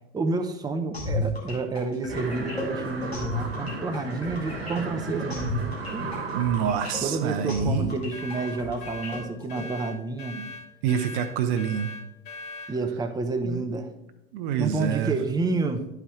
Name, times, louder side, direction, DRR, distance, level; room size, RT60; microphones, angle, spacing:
voice 1, 0.1-6.1 7.0-10.4 12.7-13.9 14.6-15.9, right 3 dB, 15° right, 6 dB, 0.7 m, -29 dB
sound 1, 0.9-9.6, left 2 dB, 90° left, 2.0 m, -33 dB
sound 2, 2.1-8.6, right 3 dB, 80° right, 1.4 m, -36 dB
voice 2, 6.3-7.9 10.3-10.5 10.8-11.9 13.4-13.7 14.3-15.1, right 8 dB, 50° right, 9 dB, 0.7 m, -27 dB
sound 3, 8.1-12.8, left 3 dB, 55° left, 1.0 m, -40 dB
11.0 x 4.6 x 3.6 m, 0.90 s
figure-of-eight pair, 75°, 30 cm